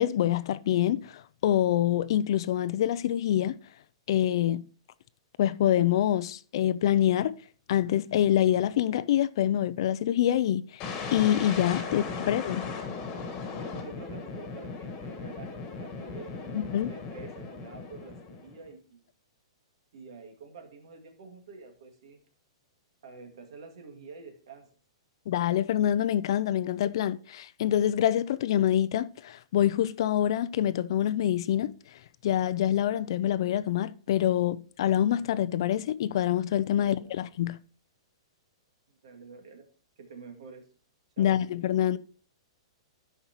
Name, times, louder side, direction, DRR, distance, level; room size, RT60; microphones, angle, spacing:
voice 1, 0.0-3.6 4.1-4.6 5.4-7.3 7.7-10.8 11.1-12.6 16.5-16.9 25.3-31.7 32.2-37.6 41.2-42.0, left 11 dB, 55° left, 0.4 m, -26 dB
sound 1, 10.8-18.7, left 4 dB, 25° left, 1.5 m, -37 dB
voice 2, 13.5-19.1 19.9-22.2 23.0-24.7 36.8-37.2 38.9-39.7 40.0-40.7 41.2-41.4, right 4 dB, 65° right, 2.1 m, -48 dB
12.0 x 5.6 x 3.0 m
hypercardioid pair, 160°, 3 cm